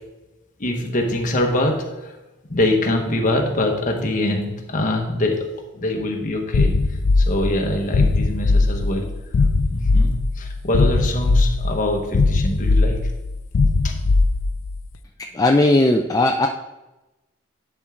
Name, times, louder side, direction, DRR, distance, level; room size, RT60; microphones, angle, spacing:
voice 1, 0.6-2.1 2.5-5.5 5.7-6.7 7.2-9.1 9.7-13.0 13.8-13.9, left 1 dB, 40° left, 2 dB, 1.1 m, -23 dB
alien-heart, 6.5-14.8, left 3 dB, 80° left, 0.4 m, -19 dB
voice 2, 15.3-16.5, left 2 dB, 20° left, 2 dB, 0.4 m, -17 dB
11.0 x 4.4 x 3.7 m, 1.0 s
head